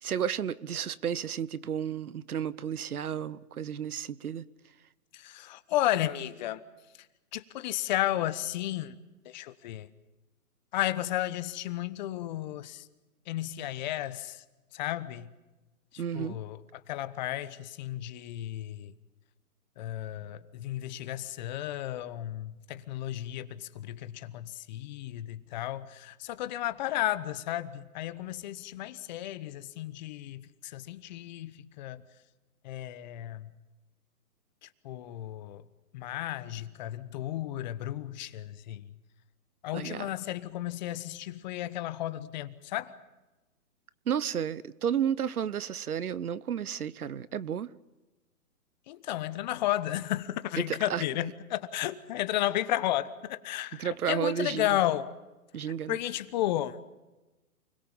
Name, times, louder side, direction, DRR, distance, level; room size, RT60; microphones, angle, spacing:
voice 1, 0.0-4.4 16.0-16.4 39.7-40.1 44.1-47.7 50.6-51.0 53.8-54.8 55.5-56.0, right 8 dB, 75° right, 1.2 m, -32 dB
voice 2, 5.1-6.6 7.3-9.0 9.3-9.9 10.7-12.8 13.3-14.4 14.7-15.3 16.1-16.6 16.9-18.9 19.8-32.0 32.6-33.5 34.8-35.6 35.9-38.8 39.6-42.9 48.9-53.1 53.4-55.1 55.9-56.8, left 14 dB, 30° left, 1.1 m, -33 dB
29.0 x 21.5 x 7.3 m
hypercardioid pair, 145°, 45 cm